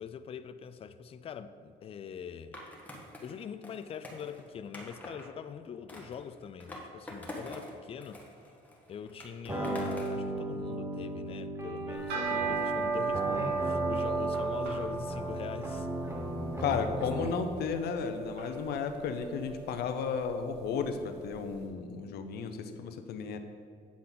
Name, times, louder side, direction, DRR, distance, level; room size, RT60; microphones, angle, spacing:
voice 1, 0.0-2.6 3.2-8.2 8.9-15.9, left 7 dB, 35° left, 0.4 m, -43 dB
Skateboard, 2.5-5.3 5.9-7.7 8.0-10.2, left 1 dB, 10° left, 1.5 m, -45 dB
sound 1, 9.5-17.5, right 1 dB, 15° right, 1.0 m, -36 dB
sound 2, 11.9-21.3, right 4 dB, 90° right, 2.2 m, -36 dB
voice 2, 16.6-23.4, left 6 dB, 70° left, 0.7 m, -33 dB
8.5 x 7.4 x 4.0 m
cardioid pair, 110°, 17 cm